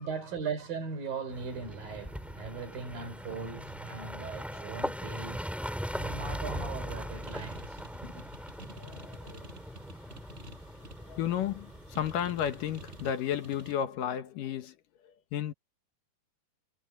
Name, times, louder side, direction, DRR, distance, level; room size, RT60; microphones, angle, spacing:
voice 1, 0.0-8.4, right 5 dB, 70° right, 6.3 m, -39 dB
sound 1, 1.3-13.1, equal, ahead, 2.5 m, -40 dB
sound 2, 5.6-13.7, right 2 dB, 15° right, 5.8 m, -51 dB
voice 2, 8.7-9.5 11.1-14.8 15.0-15.5, left 9 dB, 70° left, 2.6 m, -33 dB
omnidirectional pair, 4.3 m